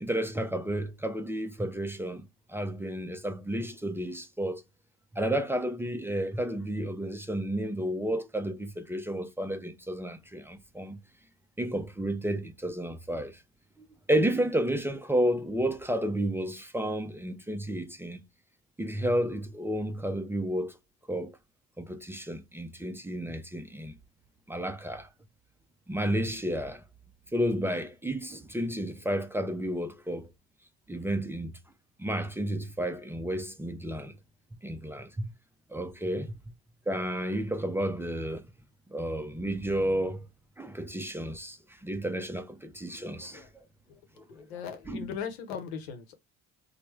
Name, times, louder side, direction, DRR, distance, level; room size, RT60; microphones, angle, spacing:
voice 1, 0.0-4.6 5.1-11.0 11.6-13.4 13.8-18.2 18.8-20.8 21.1-21.4 21.8-23.9 24.5-25.1 25.9-26.8 27.3-30.3 30.9-31.5 32.0-34.2 34.6-35.3 35.7-36.3 36.9-38.5 38.9-40.3 40.6-43.5 44.2-44.3 44.9-45.1, right 1 dB, 10° right, 0.4 m, -31 dB
voice 2, 44.3-46.2, left 7 dB, 90° left, 0.7 m, -39 dB
3.2 x 2.1 x 3.0 m
supercardioid pair, 80°, 31 cm